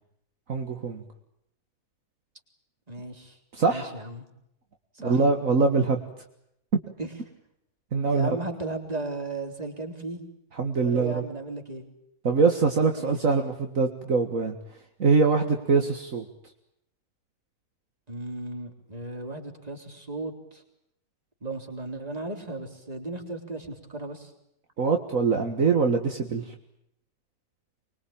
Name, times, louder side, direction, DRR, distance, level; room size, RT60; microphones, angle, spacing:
voice 1, 0.5-1.0 3.5-3.9 5.0-6.0 7.9-8.3 10.6-11.2 12.2-14.6 15.0-16.2 24.8-26.5, right 4 dB, 60° right, 4 dB, 2.1 m, -23 dB
voice 2, 2.9-3.4 3.7-4.2 4.9-5.2 7.0-7.1 8.1-10.2 10.8-11.9 13.0-13.2 18.1-20.6 21.4-24.3, right 2 dB, 25° right, 3 dB, 3.9 m, -35 dB
25.0 x 22.5 x 8.8 m, 0.77 s
omnidirectional pair, 1.6 m